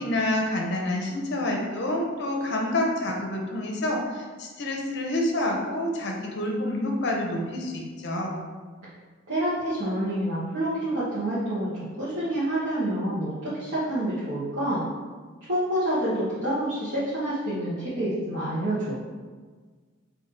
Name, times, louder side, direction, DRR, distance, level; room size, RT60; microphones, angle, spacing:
voice 1, 0.0-8.4, left 1 dB, 55° left, 0 dB, 0.7 m, -28 dB
voice 2, 9.3-14.8 15.5-19.0, right 1 dB, 60° right, -12 dB, 1.1 m, -28 dB
3.6 x 2.7 x 4.3 m, 1.5 s
head